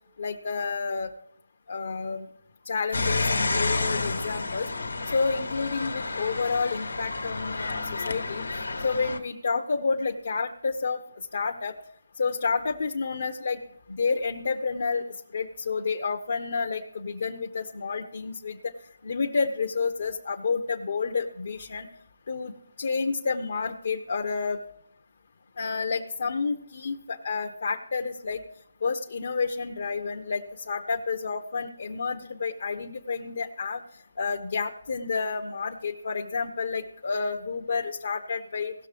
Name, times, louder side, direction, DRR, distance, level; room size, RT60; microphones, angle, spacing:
voice 1, 0.2-1.1 1.7-2.3 2.7-4.7 5.1-11.7 12.2-13.6 13.9-15.0 15.3-18.6 19.0-21.9 22.3-22.5 22.8-24.6 25.6-28.4 28.8-33.8 34.2-38.7, left 4 dB, 50° left, 2 dB, 0.8 m, -30 dB
sound 1, 2.9-9.2, left 3 dB, 90° left, 1.4 m, -30 dB
17.5 x 6.6 x 3.4 m, 0.71 s
figure-of-eight pair, 170°, 0 cm